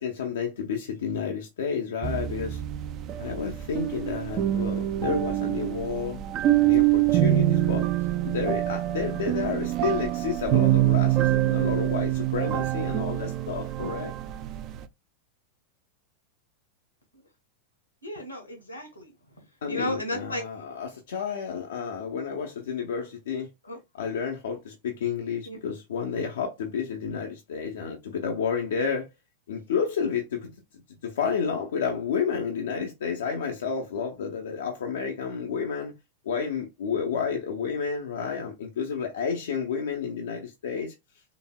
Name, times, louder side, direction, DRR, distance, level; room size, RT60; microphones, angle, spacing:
voice 1, 0.0-2.6 3.2-6.2 6.6-7.9 8.2-14.1 19.6-23.5 23.9-29.1 29.5-30.5 31.0-35.9 36.3-40.9, left 6 dB, 60° left, 0.6 m, -30 dB
sound 1, 2.0-14.8, right 14 dB, 35° right, 0.4 m, -25 dB
voice 2, 18.0-19.1 19.7-20.4 23.6-23.8 25.4-25.6, left 1 dB, 85° left, 1.6 m, -33 dB
4.0 x 3.3 x 2.2 m
figure-of-eight pair, 90°, 0 cm